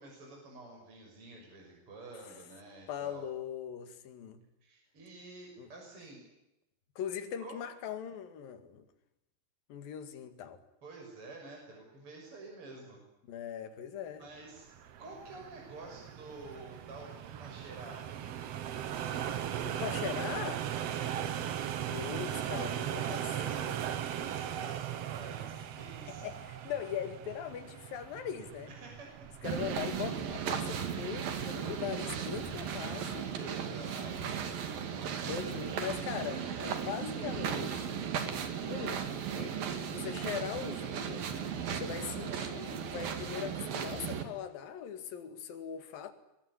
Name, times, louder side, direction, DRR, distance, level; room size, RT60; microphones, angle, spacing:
voice 1, 0.0-3.2 4.6-6.2 7.4-7.6 10.8-13.0 14.2-14.7 15.0-18.4 20.9-21.5 22.4-26.3 28.7-29.1 33.4-34.5 35.4-35.6, right 3 dB, 30° right, 6.9 m, -49 dB
voice 2, 2.9-4.4 5.6-5.7 7.0-8.9 9.7-10.6 13.3-14.2 19.3-20.7 21.9-23.3 26.2-28.7 29.4-33.3 35.1-38.0 38.7-39.1 39.3-41.3 41.7-46.1, left 9 dB, 60° left, 3.6 m, -40 dB
sound 1, 14.6-32.9, right 10 dB, 85° right, 1.4 m, -39 dB
sound 2, 29.4-44.2, right 7 dB, 60° right, 3.8 m, -36 dB
23.0 x 23.0 x 9.9 m
omnidirectional pair, 4.8 m